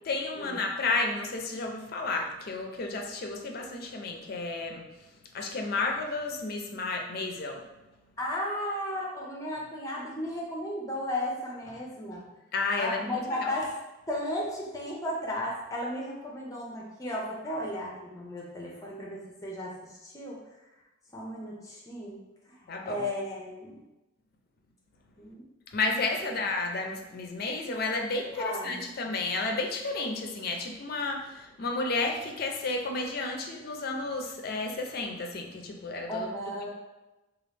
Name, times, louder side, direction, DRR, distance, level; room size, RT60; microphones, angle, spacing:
voice 1, 0.1-7.7 12.5-13.5 22.7-23.0 25.7-36.7, left 3 dB, 55° left, 2 dB, 0.5 m, -32 dB
voice 2, 8.2-12.2 12.8-13.7 14.1-20.4 21.1-22.2 22.5-23.8 25.2-25.4 26.2-26.3 28.4-28.8 36.1-36.7, left 1 dB, 15° left, -3 dB, 0.7 m, -35 dB
3.0 x 2.4 x 3.3 m, 1.0 s
head